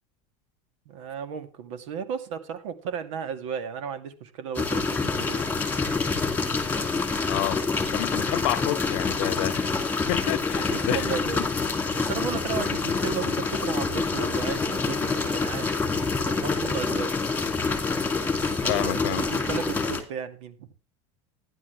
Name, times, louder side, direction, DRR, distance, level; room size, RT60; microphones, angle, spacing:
voice 1, 0.9-5.4 10.7-11.5 12.0-15.7 16.3-17.2 18.3-20.7, right 7 dB, 85° right, 2.3 m, -34 dB
sound 1, 4.5-20.0, left 4 dB, 10° left, 2.7 m, -27 dB
voice 2, 7.3-7.6 7.9-9.7 10.1-11.1 18.7-19.3, left 22 dB, 70° left, 0.6 m, -29 dB
15.0 x 10.5 x 3.4 m
supercardioid pair, 130°, 16 cm